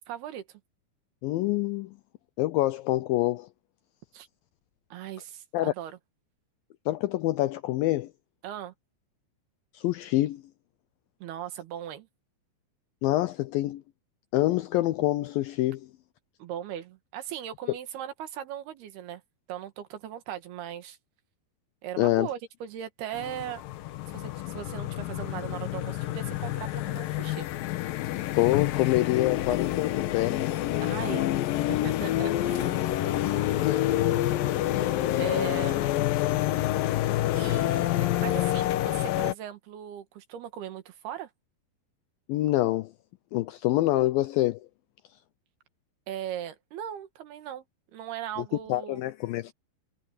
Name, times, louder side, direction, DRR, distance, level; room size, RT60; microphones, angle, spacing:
voice 1, 0.1-0.6 4.1-4.3 4.9-6.0 8.4-8.7 11.2-12.1 16.4-19.2 19.5-21.0 21.8-23.6 24.1-27.5 30.8-31.3 31.7-33.0 34.8-34.9 35.2-35.9 37.4-41.3 46.1-47.6 47.9-49.0, right 10 dB, 70° right, 3.6 m, -38 dB
voice 2, 1.2-2.0 2.4-3.5 5.5-5.7 6.9-8.1 9.7-10.4 13.0-13.8 14.3-15.9 22.0-22.3 28.3-30.6 33.6-34.0 35.1-35.2 42.3-42.9 43.3-44.6 48.7-49.5, left 16 dB, 85° left, 2.1 m, -26 dB
sound 1, 23.1-39.3, left 14 dB, 70° left, 2.4 m, -28 dB
omnidirectional pair, 4.8 m